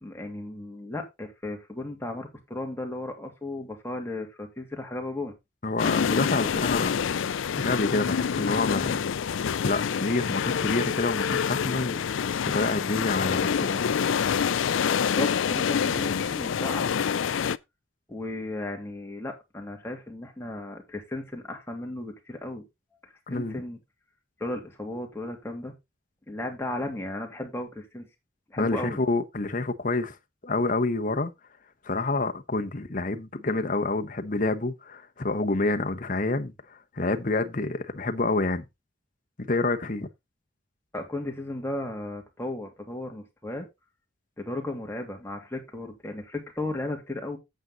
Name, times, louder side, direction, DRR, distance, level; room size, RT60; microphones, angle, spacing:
voice 1, 0.0-5.3 15.0-17.1 18.1-22.6 23.3-23.8 24.4-25.7 26.3-28.1 28.5-29.0 40.9-43.7 44.4-47.4, left 1 dB, 10° left, 2.5 m, -35 dB
voice 2, 5.6-7.0 7.3-9.1 9.6-13.9 23.3-23.6 28.6-30.2 30.4-31.3 31.8-38.7 39.4-40.1, left 2 dB, 40° left, 1.0 m, -28 dB
sound 1, 5.8-17.6, left 7 dB, 80° left, 0.4 m, -27 dB
8.8 x 8.0 x 3.9 m
head